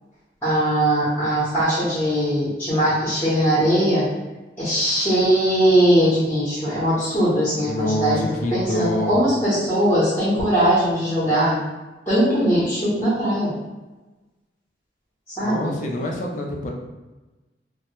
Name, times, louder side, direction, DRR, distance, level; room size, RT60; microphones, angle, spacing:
voice 1, 0.4-4.1 4.6-11.6 12.1-13.5 15.4-15.7, right 1 dB, 15° left, -11 dB, 0.7 m, -20 dB
voice 2, 7.7-9.2 15.4-16.7, left 1 dB, 45° left, 0 dB, 0.4 m, -26 dB
2.1 x 2.1 x 2.9 m, 1.1 s
head